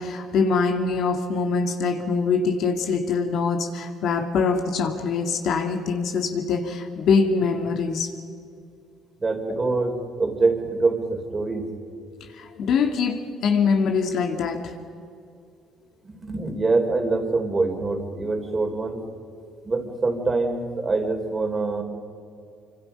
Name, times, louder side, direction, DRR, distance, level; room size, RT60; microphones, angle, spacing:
voice 1, 0.0-8.1 12.3-14.7, left 5 dB, 65° left, 4 dB, 2.5 m, -23 dB
voice 2, 9.2-11.7 16.0-19.0 19.6-21.8, right 3 dB, 25° right, 4 dB, 3.8 m, -24 dB
25.5 x 25.5 x 5.6 m, 2.4 s
cardioid pair, 90°, 0 cm